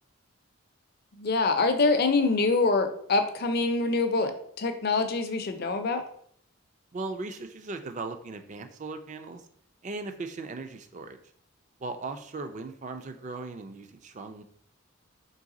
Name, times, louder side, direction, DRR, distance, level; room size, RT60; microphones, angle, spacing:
voice 1, 1.2-4.3 4.6-6.0, left 3 dB, 45° left, 7 dB, 0.5 m, -25 dB
voice 2, 6.9-9.4 9.8-11.2 11.8-14.4, right 3 dB, 35° right, 8 dB, 0.3 m, -38 dB
4.0 x 3.2 x 3.7 m, 0.63 s
head